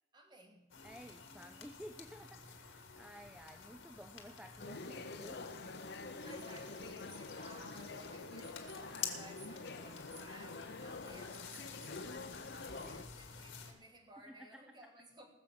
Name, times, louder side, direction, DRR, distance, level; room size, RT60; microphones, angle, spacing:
voice 1, 0.1-0.7 6.2-15.3, right 1 dB, 25° right, 1.8 m, -58 dB
sound 1, 0.7-13.7, left 7 dB, 90° left, 1.9 m, -50 dB
voice 2, 0.8-5.5 12.8-12.9 14.3-14.6, equal, 5° right, 0.5 m, -53 dB
sound 2, 4.6-13.1, left 3 dB, 60° left, 0.9 m, -47 dB
20.0 x 7.2 x 6.0 m
head